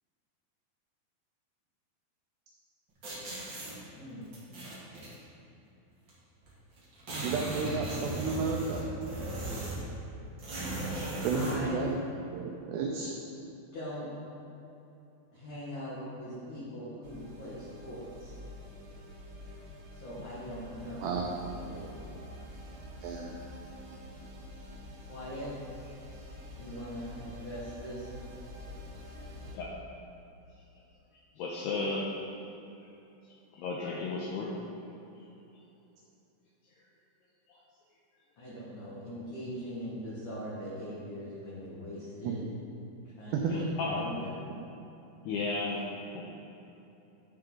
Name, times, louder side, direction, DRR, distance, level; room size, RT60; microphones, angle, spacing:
sound 1, 3.0-3.7 4.3-5.1 6.1-6.2 6.4-6.5 6.8-9.9 10.4-11.6, right 1 dB, 50° right, 1.3 m, -37 dB
voice 1, 7.2-8.8 11.2-12.0 12.3-13.1 21.0-21.3 23.0-23.4 42.2-42.3 43.3-43.6, right 5 dB, 90° right, 0 dB, 2.4 m, -32 dB
voice 2, 11.3-11.9 13.7-14.1 15.3-18.3 19.9-21.1 21.5-22.1 25.1-25.5 26.6-28.1 38.4-42.5 43.2-43.6 43.9-44.2, equal, 55° left, -10 dB, 2.5 m, -41 dB
sound 2, 17.0-29.6, left 1 dB, 70° right, 2.7 m, -47 dB
voice 3, 31.4-32.1 33.5-34.5 37.5-37.6 43.5-44.4 45.2-46.2, left 3 dB, 85° left, -3 dB, 2.4 m, -34 dB
11.0 x 6.7 x 3.9 m, 2.9 s
omnidirectional pair, 5.6 m